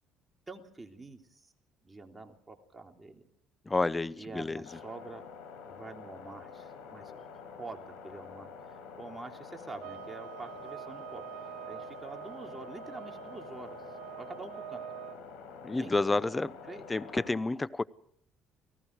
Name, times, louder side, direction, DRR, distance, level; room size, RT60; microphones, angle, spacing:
voice 1, 0.5-1.5 1.8-3.3 4.2-5.2 5.7-7.3 7.6-11.2 11.7-13.8 14.2-14.8 15.8-16.8, right 3 dB, 15° right, 3 dB, 3.3 m, -46 dB
voice 2, 3.7-4.7 15.6-16.5 16.9-17.8, left 3 dB, 15° left, 18 dB, 0.7 m, -30 dB
sound 1, 4.6-17.3, left 6 dB, 85° left, 6.2 m, -47 dB
sound 2, 9.8-15.2, right 13 dB, 85° right, 2.2 m, -45 dB
29.5 x 18.5 x 4.8 m, 0.68 s
supercardioid pair, 90°, 0 cm